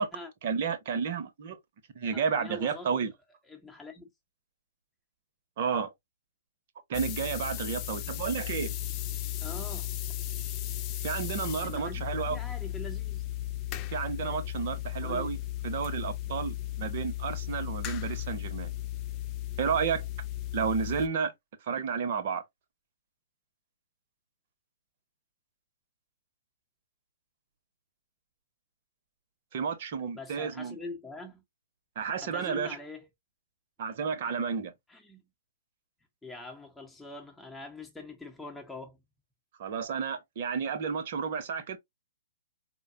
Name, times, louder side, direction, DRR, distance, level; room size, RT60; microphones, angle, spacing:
voice 1, 0.4-1.6 1.9-3.1 5.6-5.9 6.9-8.7 11.0-12.4 13.9-15.4 15.6-18.7 19.6-20.0 20.5-21.3 21.7-22.4 29.5-30.8 32.0-32.8 33.8-34.7 39.6-41.8, right 6 dB, 50° right, 1.0 m, -31 dB
voice 2, 2.1-2.9 3.5-4.1 9.4-9.9 11.6-13.2 15.0-15.3 30.1-31.4 32.2-33.1 34.9-35.2 36.2-39.0, left 2 dB, 5° left, 1.0 m, -43 dB
sound 1, 6.9-21.1, left 15 dB, 30° left, 0.5 m, -35 dB
4.5 x 2.3 x 2.6 m
figure-of-eight pair, 125°, 0 cm